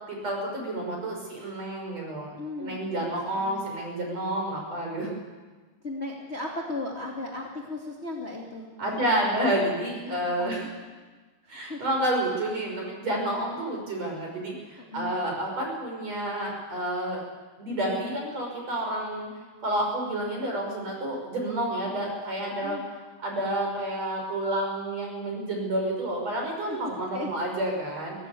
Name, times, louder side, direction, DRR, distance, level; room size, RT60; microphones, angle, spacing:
voice 1, 0.1-5.1 8.8-10.6 11.5-17.2 17.6-19.3 19.6-22.8 23.2-28.2, right 1 dB, 40° right, 0 dB, 6.9 m, -29 dB
voice 2, 2.4-2.9 3.3-3.7 5.8-9.5 10.0-10.6 11.4-11.8 14.8-15.1 22.5-22.8 26.6-27.3, left 2 dB, 20° left, -2 dB, 1.9 m, -37 dB
23.0 x 17.5 x 8.5 m, 1.3 s
omnidirectional pair, 4.8 m